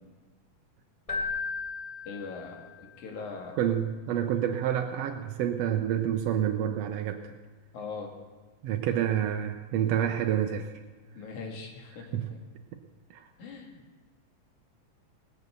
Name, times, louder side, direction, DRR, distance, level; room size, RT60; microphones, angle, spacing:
Keyboard (musical), 1.1-2.9, left 4 dB, 15° left, 1.1 m, -35 dB
voice 1, 2.1-3.5 7.7-8.1 11.1-12.1 13.4-13.8, left 4 dB, 75° left, 1 dB, 3.3 m, -40 dB
voice 2, 3.6-7.3 8.6-10.7 12.1-12.3 13.1-13.3, right 10 dB, 75° right, 5 dB, 1.6 m, -28 dB
19.5 x 8.0 x 6.8 m, 1.3 s
omnidirectional pair, 3.5 m